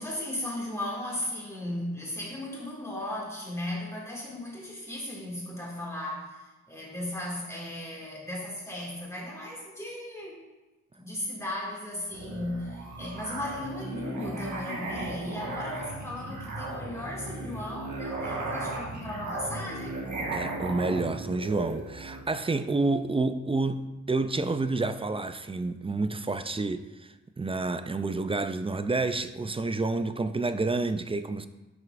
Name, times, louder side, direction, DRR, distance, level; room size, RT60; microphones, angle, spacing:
voice 1, 0.0-10.4 11.0-20.0, left 1 dB, 10° left, 2.1 m, -36 dB
Musical instrument, 12.1-22.3, right 2 dB, 75° right, 1.5 m, -36 dB
voice 2, 20.3-31.5, right 3 dB, 20° right, 0.3 m, -29 dB
10.5 x 6.3 x 2.5 m
wide cardioid pair, 120°, 29 cm